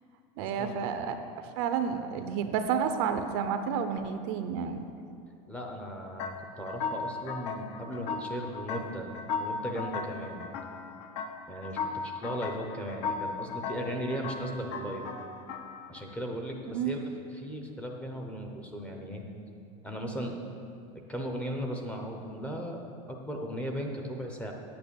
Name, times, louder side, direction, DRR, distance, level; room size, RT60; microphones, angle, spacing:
voice 1, 0.4-4.8 16.7-16.9, right 7 dB, 45° right, 8 dB, 0.6 m, -30 dB
voice 2, 5.5-9.1 9.4-10.5 11.5-15.1 15.9-17.0 17.3-19.2 19.8-20.3 21.1-22.8 23.1-24.5, equal, 5° left, 1 dB, 0.7 m, -37 dB
sound 1, 6.2-16.1, left 5 dB, 50° left, 0.8 m, -37 dB
8.9 x 8.7 x 6.9 m, 2.5 s
supercardioid pair, 180°, 17 cm